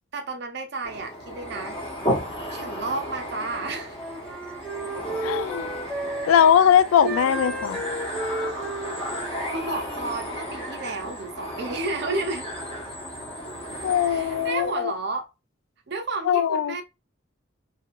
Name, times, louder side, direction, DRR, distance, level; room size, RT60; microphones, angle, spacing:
voice 1, 0.1-1.8 2.5-4.0 6.2-6.3 7.0-7.2 9.5-12.4 14.1-15.3 15.9-16.8, right 3 dB, 55° right, 0.5 m, -31 dB
sound 1, 0.8-14.8, equal, 25° left, 1.0 m, -34 dB
Wind instrument woodwind instrument, 3.4-6.6 7.0-10.2, right 1 dB, ahead, 0.7 m, -34 dB
voice 2, 5.2-5.7 6.3-7.8 13.8-14.9 16.3-16.8, left 9 dB, 90° left, 0.3 m, -20 dB
3.0 x 2.7 x 2.3 m
head